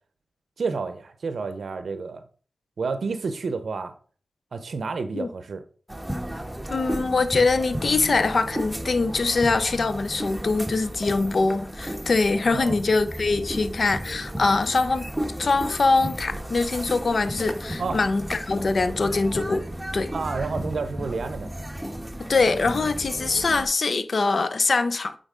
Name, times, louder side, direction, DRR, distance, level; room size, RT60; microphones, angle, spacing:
voice 1, 0.6-2.2 2.8-3.9 4.5-5.6 12.5-12.8 17.8-18.0 20.1-21.5, right 4 dB, 80° right, 0.6 m, -30 dB
sound 1, 5.9-23.7, equal, 5° right, 1.2 m, -34 dB
voice 2, 6.7-15.1 15.4-19.6 19.9-20.1 22.3-25.1, left 3 dB, 65° left, 0.6 m, -23 dB
8.9 x 3.9 x 3.7 m
cardioid pair, 50°, 0 cm